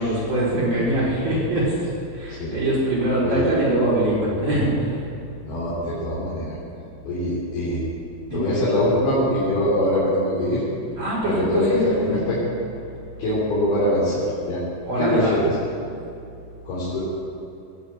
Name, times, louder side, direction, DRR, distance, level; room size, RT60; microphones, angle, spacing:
voice 1, 0.0-5.0 8.3-8.6 11.0-12.2 14.9-15.4, right 1 dB, 45° right, -7 dB, 5.5 m, -23 dB
voice 2, 5.4-6.6 7.0-7.8 8.3-10.6 11.3-12.4 13.2-14.6 15.0-15.5 16.7-17.0, left 1 dB, 70° left, -10 dB, 5.5 m, -23 dB
20.0 x 8.3 x 8.1 m, 2.6 s
omnidirectional pair, 4.6 m